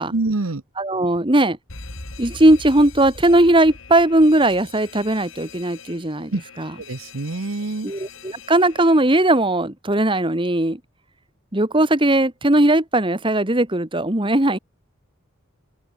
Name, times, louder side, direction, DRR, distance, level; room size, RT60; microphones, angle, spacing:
voice 1, 0.1-0.6 6.3-6.4 6.8-7.9, right 2 dB, 85° right, 1.1 m, -25 dB
voice 2, 0.8-1.6 2.2-6.7 7.8-10.8 11.5-14.6, right 1 dB, 25° right, 1.8 m, -18 dB
Alarm, 1.7-9.4, left 3 dB, 70° left, 3.7 m, -41 dB
head